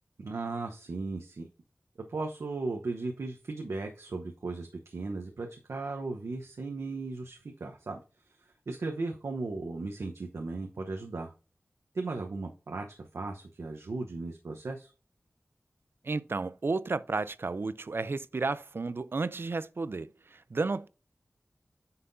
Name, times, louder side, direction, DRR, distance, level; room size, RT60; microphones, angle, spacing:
voice 1, 0.2-1.5 2.1-8.0 8.7-11.3 11.9-12.8 13.1-14.9, right 3 dB, 90° right, 0.9 m, -36 dB
voice 2, 16.0-20.9, right 3 dB, 55° right, 0.5 m, -32 dB
9.6 x 5.7 x 2.7 m
wide cardioid pair, 80°, 5 cm